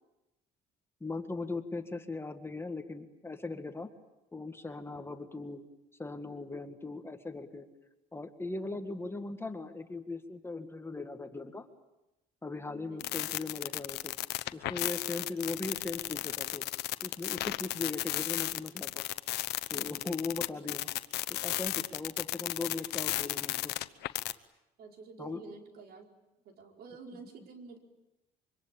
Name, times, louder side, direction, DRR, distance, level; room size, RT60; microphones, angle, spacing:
voice 1, 1.0-3.9 4.3-5.6 6.0-7.7 8.1-11.7 12.4-14.1 14.5-16.6 17.0-19.0 19.7-20.9 21.3-23.7 25.2-25.4, left 3 dB, 15° left, 7 dB, 1.8 m, -39 dB
voice 2, 12.7-13.1 24.8-26.1 26.4-27.8, right 4 dB, 70° right, 3 dB, 4.8 m, -49 dB
sound 1, 13.0-24.3, left 16 dB, 80° left, 1.0 m, -34 dB
25.5 x 24.5 x 8.9 m, 0.95 s
cardioid pair, 110°, 17 cm